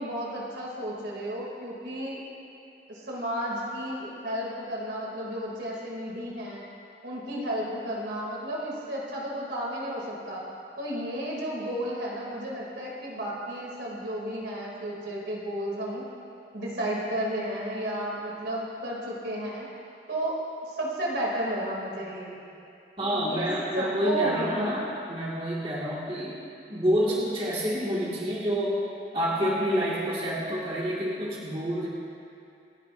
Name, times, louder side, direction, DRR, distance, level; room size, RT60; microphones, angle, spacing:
voice 1, 0.0-2.2 2.9-6.6 7.0-10.4 10.8-16.1 16.5-19.7 20.1-20.4 20.7-22.4 23.0-23.5 23.7-24.8, right 1 dB, 80° right, -4 dB, 2.7 m, -32 dB
voice 2, 23.0-26.4 26.7-28.8 29.1-31.9, equal, 30° right, -6 dB, 1.8 m, -28 dB
27.0 x 9.8 x 2.6 m, 2.6 s
head